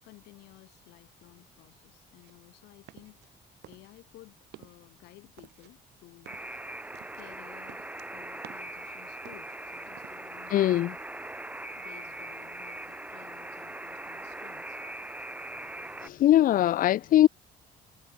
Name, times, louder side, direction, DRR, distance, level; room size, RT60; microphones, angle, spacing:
voice 1, 0.0-6.4 7.1-10.8 11.2-11.3 11.8-14.8, left 20 dB, 90° left, 7.9 m, -55 dB
sound 1, 2.2-3.3 3.6-4.2 4.4-4.9 5.4-8.8 9.2-10.2, right 16 dB, 75° right, 7.8 m, -52 dB
Alarm, 6.3-16.1, right 2 dB, 10° right, 1.9 m, -41 dB
voice 2, 10.5-10.9 16.0-17.3, left 13 dB, 55° left, 0.6 m, -21 dB
cardioid pair, 110°, 17 cm